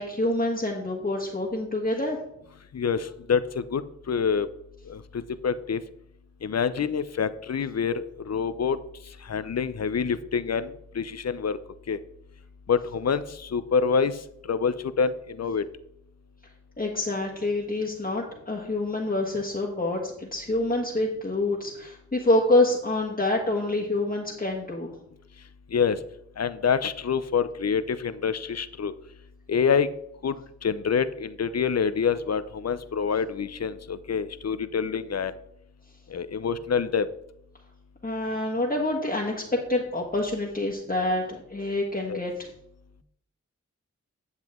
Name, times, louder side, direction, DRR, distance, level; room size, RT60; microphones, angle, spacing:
voice 1, 0.0-2.2 16.8-24.9 38.0-39.3 39.7-42.3, left 2 dB, 30° left, -2 dB, 1.5 m, -26 dB
voice 2, 2.7-4.5 4.9-5.8 6.4-8.8 9.3-11.6 11.9-12.0 12.7-14.1 14.5-15.6 25.7-26.0 26.4-28.9 29.5-29.9 30.2-30.3 30.6-35.3 36.1-37.1 42.1-42.2, left 6 dB, 60° left, 14 dB, 0.6 m, -26 dB
9.7 x 7.3 x 3.7 m, 0.76 s
cardioid pair, 45°, 29 cm